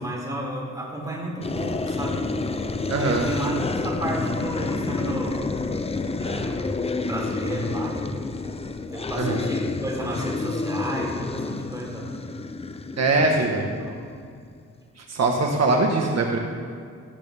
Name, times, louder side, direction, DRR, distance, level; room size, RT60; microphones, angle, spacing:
voice 1, 0.0-2.2 2.9-5.5 6.2-6.8 7.0-8.2 8.9-12.1 13.2-14.0, right 1 dB, 10° right, -3 dB, 3.8 m, -32 dB
sound 1, 1.4-14.3, left 3 dB, 20° left, 0.6 m, -29 dB
voice 2, 2.9-3.3 9.2-9.4 13.0-13.6 15.0-16.4, right 3 dB, 55° right, 1 dB, 1.6 m, -22 dB
18.5 x 13.5 x 3.6 m, 2.2 s
cardioid pair, 115°, 31 cm